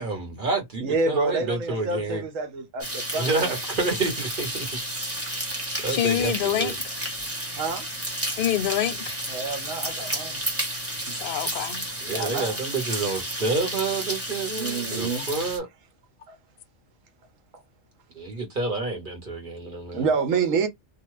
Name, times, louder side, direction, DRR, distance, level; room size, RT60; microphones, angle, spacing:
voice 1, 0.0-2.2 3.1-4.8 5.8-6.7 11.0-11.2 12.0-15.7 18.1-20.1, right 3 dB, 40° right, 1.4 m, -29 dB
voice 2, 0.8-3.6 7.6-7.9 9.3-10.4 12.1-12.6 14.6-15.3 16.3-16.4 19.9-20.7, right 4 dB, 80° right, 1.2 m, -28 dB
sound 1, 2.8-15.6, right 1 dB, 10° right, 1.0 m, -32 dB
voice 3, 5.9-7.1 8.4-9.2 11.2-11.9 15.2-15.3, left 11 dB, 60° left, 0.6 m, -26 dB
2.8 x 2.3 x 3.1 m
omnidirectional pair, 1.3 m